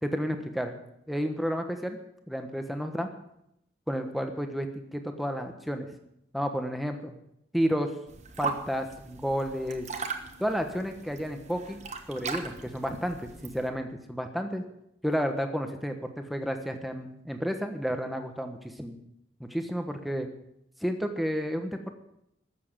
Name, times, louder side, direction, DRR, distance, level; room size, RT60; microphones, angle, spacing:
voice 1, 0.0-0.8 1.1-2.0 2.3-3.1 3.9-5.9 6.3-7.1 7.5-7.9 8.4-9.9 10.4-11.8 12.1-14.6 15.0-19.0 19.4-20.3 20.8-21.9, equal, ahead, 5 dB, 1.2 m, -31 dB
sound 1, 8.1-13.7, right 4 dB, 35° right, 1.3 m, -39 dB
13.5 x 7.5 x 8.9 m, 0.80 s
head